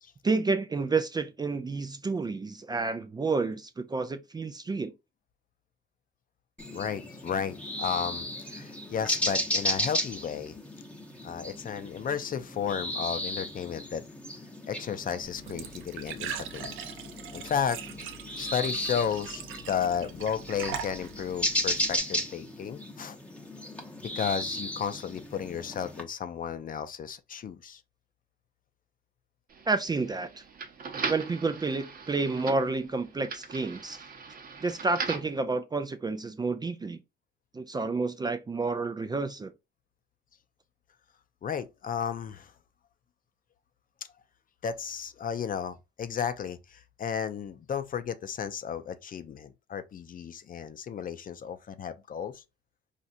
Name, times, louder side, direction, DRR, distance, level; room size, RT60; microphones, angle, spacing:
voice 1, 0.2-4.9 29.7-30.4 31.1-34.0 34.6-37.0 37.5-39.5, right 3 dB, 20° right, 0.3 m, -30 dB
sound 1, 6.6-26.0, left 1 dB, 5° left, 0.8 m, -35 dB
voice 2, 6.7-10.6 11.2-14.0 14.7-16.7 17.3-17.8 18.4-23.2 24.0-27.8 41.4-42.5 44.6-52.4, left 7 dB, 45° left, 0.5 m, -33 dB
Glass / Trickle dribble / Fill (with liquid), 15.2-22.0, right 7 dB, 80° right, 0.6 m, -41 dB
sound 2, 29.5-35.4, right 5 dB, 45° right, 0.7 m, -39 dB
4.2 x 2.4 x 2.5 m
cardioid pair, 90°, 20 cm